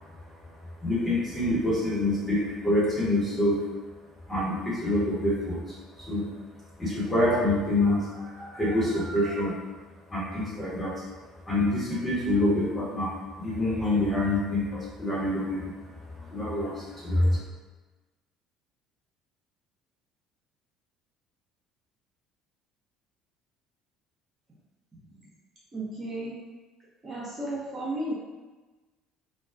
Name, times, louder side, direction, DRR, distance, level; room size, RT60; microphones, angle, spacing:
voice 1, 0.8-3.6 4.3-5.6 6.1-6.3 6.8-9.6 10.1-10.9 11.5-15.8 16.1-17.4, left 1 dB, 15° left, -8 dB, 1.2 m, -26 dB
voice 2, 25.7-26.4 27.0-28.1, right 1 dB, 30° right, -7 dB, 0.7 m, -33 dB
2.3 x 2.2 x 2.5 m, 1.2 s
hypercardioid pair, 60°, 0 cm